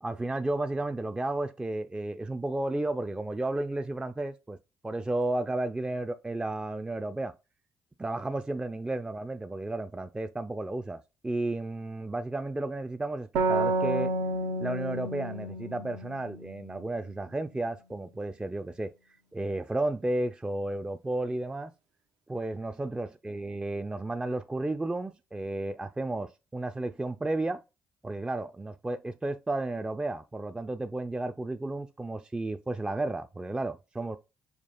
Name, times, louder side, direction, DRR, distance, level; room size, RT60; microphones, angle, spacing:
voice 1, 0.0-4.6 4.8-7.3 8.0-14.1 14.6-18.9 19.3-21.7 22.3-27.6 28.0-34.2, right 2 dB, 15° right, 0.3 m, -33 dB
sound 1, 13.3-16.9, right 2 dB, 75° right, 0.6 m, -30 dB
5.8 x 2.4 x 2.2 m
hypercardioid pair, 50°, 6 cm